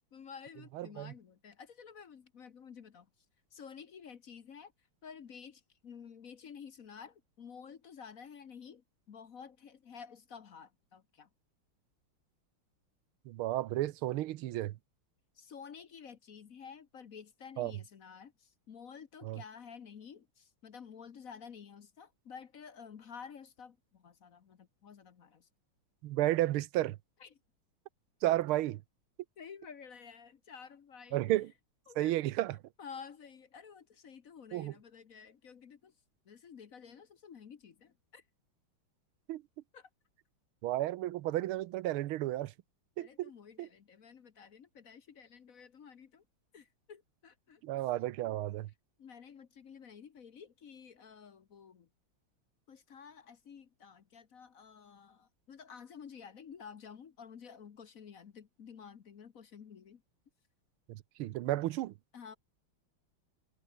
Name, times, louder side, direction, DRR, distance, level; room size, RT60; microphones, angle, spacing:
voice 1, 0.1-3.1 3.5-4.7 5.0-11.3 15.3-25.5 27.2-27.4 29.4-31.4 31.9-32.2 32.8-35.9 36.2-38.2 39.7-39.9 43.0-46.2 46.5-47.6 49.0-51.9 52.7-60.0 62.1-62.4, left 6 dB, 45° left, 1.3 m, -51 dB
voice 2, 0.7-1.1 13.3-14.8 17.6-17.7 19.2-19.4 26.0-27.0 28.2-28.8 31.1-31.5 32.0-32.6 34.5-34.7 39.3-39.4 40.6-42.5 43.0-43.3 43.6-43.7 47.6-48.7 60.9-61.9, right 15 dB, 80° right, 1.6 m, -32 dB
omnidirectional pair, 2.4 m